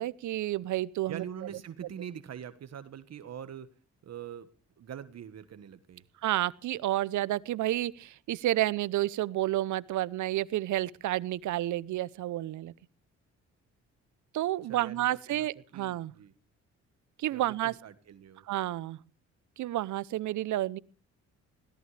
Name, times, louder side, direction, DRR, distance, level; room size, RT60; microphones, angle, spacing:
voice 1, 0.0-1.2 6.2-12.7 14.3-16.1 17.2-17.7 18.5-19.0 19.6-20.8, right 14 dB, 75° right, 19 dB, 0.8 m, -30 dB
voice 2, 1.1-3.7 4.0-4.5 4.8-6.1 14.7-16.3 17.3-18.5, right 9 dB, 60° right, 12 dB, 1.5 m, -44 dB
21.0 x 17.0 x 3.3 m, 0.39 s
cardioid pair, 90°, 30 cm